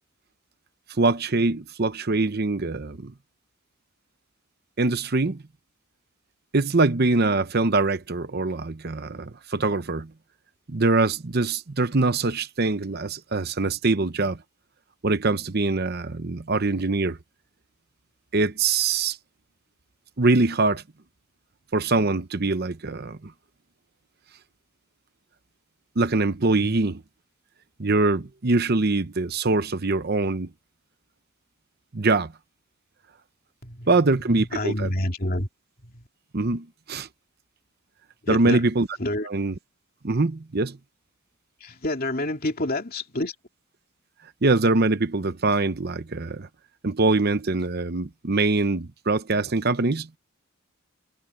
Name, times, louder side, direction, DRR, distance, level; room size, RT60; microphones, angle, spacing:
voice 1, 1.0-3.1 4.8-5.4 6.5-10.1 10.7-14.4 15.0-17.2 18.3-19.2 20.2-20.8 21.7-23.3 26.0-27.0 27.8-30.5 31.9-32.3 33.9-34.9 36.3-37.1 38.3-38.9 39.3-39.5 40.0-40.8 44.4-46.5 46.8-50.1, right 3 dB, 45° right, 0.8 m, -23 dB
voice 2, 33.6-33.9 34.3-35.5 35.8-36.1 38.2-38.6 39.0-39.3 41.6-43.4, left 1 dB, 45° left, 2.9 m, -28 dB
head